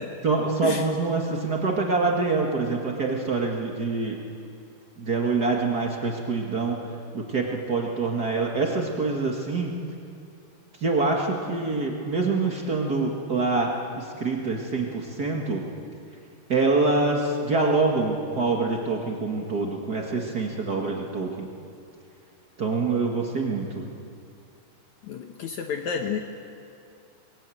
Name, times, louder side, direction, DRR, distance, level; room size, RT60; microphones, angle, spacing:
voice 1, 0.2-4.2 5.0-6.8 7.1-9.7 10.8-15.6 16.5-21.5 22.6-23.8, right 3 dB, 85° right, 0 dB, 0.8 m, -25 dB
voice 2, 25.0-26.2, left 7 dB, 80° left, 5 dB, 1.7 m, -30 dB
23.5 x 21.0 x 9.1 m, 2.5 s
omnidirectional pair, 4.8 m